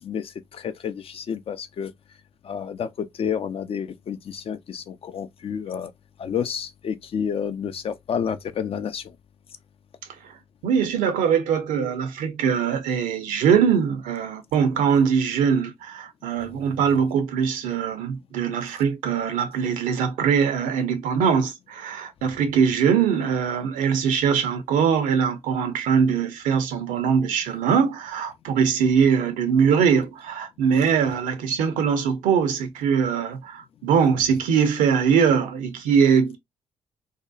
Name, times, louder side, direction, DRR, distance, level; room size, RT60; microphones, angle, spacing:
voice 1, 0.0-1.9 2.4-5.9 6.2-9.1, left 7 dB, 45° left, 0.4 m, -30 dB
voice 2, 10.6-36.4, right 7 dB, 70° right, 0.6 m, -22 dB
2.7 x 2.1 x 2.3 m
hypercardioid pair, 40°, 14 cm